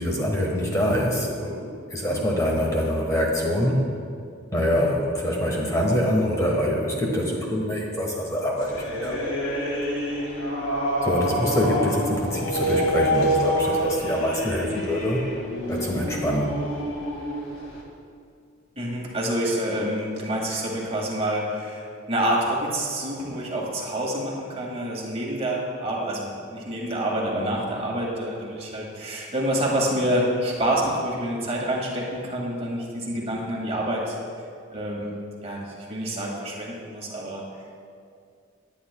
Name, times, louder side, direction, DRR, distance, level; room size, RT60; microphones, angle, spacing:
voice 1, 0.0-3.8 4.5-9.2 11.0-15.2 15.7-16.5, equal, 15° left, -2 dB, 1.3 m, -25 dB
sound 1, 8.6-17.8, equal, 85° left, 2.1 m, -27 dB
voice 2, 18.8-34.2 34.7-35.1 35.4-37.4, right 1 dB, 30° right, -2 dB, 1.9 m, -27 dB
19.5 x 9.6 x 2.2 m, 2.3 s
head